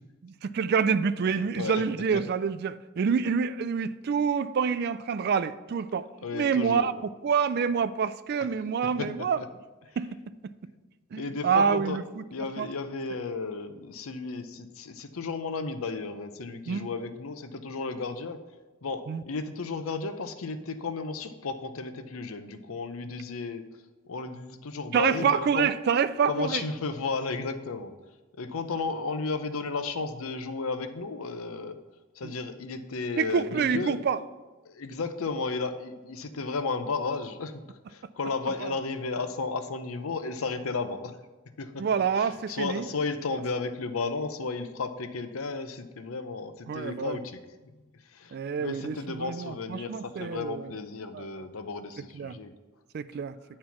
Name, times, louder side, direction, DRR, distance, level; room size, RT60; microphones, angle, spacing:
voice 1, 0.2-6.1 6.3-6.9 7.2-9.4 10.0-10.1 11.1-12.2 12.6-12.7 16.7-16.9 19.1-19.2 24.9-26.6 32.2-32.3 33.2-34.2 38.6-38.7 41.8-42.9 46.7-47.2 48.3-50.7 51.1-51.3 52.1-52.4 52.9-53.4, right 6 dB, 50° right, 14 dB, 0.3 m, -27 dB
voice 2, 1.4-1.8 2.1-2.2 6.2-6.9 9.0-9.5 11.2-12.0 12.3-18.4 18.8-23.6 24.1-25.7 26.3-27.9 28.4-31.8 32.1-34.0 34.6-37.6 37.9-41.1 41.6-47.4 48.1-52.5, left 4 dB, 85° left, 8 dB, 0.7 m, -34 dB
9.3 x 4.4 x 5.8 m, 1.2 s
head